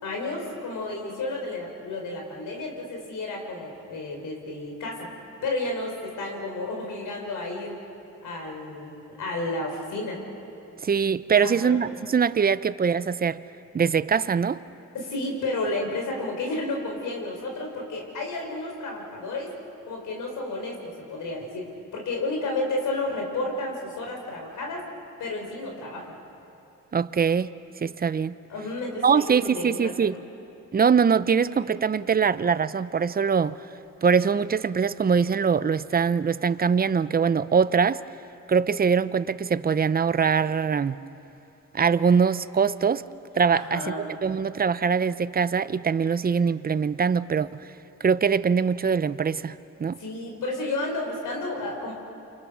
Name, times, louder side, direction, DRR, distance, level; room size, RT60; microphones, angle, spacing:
voice 1, 0.0-5.1 5.4-7.8 8.2-10.2 11.4-11.8 14.9-19.5 19.9-24.9 25.2-26.2 28.5-29.9 43.5-44.0 50.0-51.9, left 2 dB, 80° left, 5.0 m, -32 dB
voice 2, 10.8-13.4 13.7-14.6 26.9-27.5 27.8-28.3 29.0-30.1 30.7-33.6 34.0-38.0 38.5-41.0 41.7-43.0 43.3-43.8 44.2-47.7 48.0-50.0, right 6 dB, 30° right, 0.7 m, -23 dB
29.5 x 25.5 x 6.3 m
cardioid pair, 80°, 31 cm